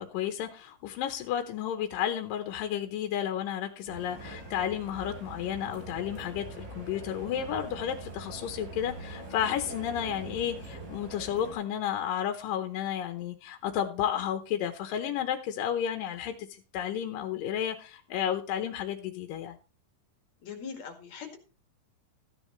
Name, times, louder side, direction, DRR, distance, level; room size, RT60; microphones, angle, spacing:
voice 1, 0.0-19.6, left 10 dB, 80° left, 2.6 m, -32 dB
sound 1, 3.8-11.6, right 2 dB, 75° right, 6.2 m, -43 dB
voice 2, 20.4-21.4, left 6 dB, 55° left, 3.2 m, -41 dB
14.5 x 9.8 x 3.1 m
omnidirectional pair, 3.9 m